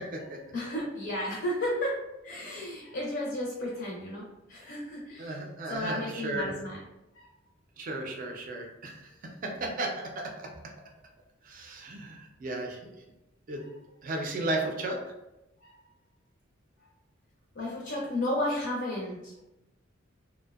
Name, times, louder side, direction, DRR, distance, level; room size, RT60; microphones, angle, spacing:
voice 1, 0.0-0.4 5.2-6.5 7.8-9.1 9.4-10.3 11.4-12.8 13.5-13.6 14.0-15.1, right 2 dB, 45° right, 2 dB, 0.4 m, -34 dB
voice 2, 0.5-5.4 5.7-6.8 7.1-7.3 15.6-15.8 17.5-19.4, left 1 dB, 55° left, -3 dB, 0.5 m, -33 dB
2.6 x 2.1 x 2.3 m, 0.96 s
head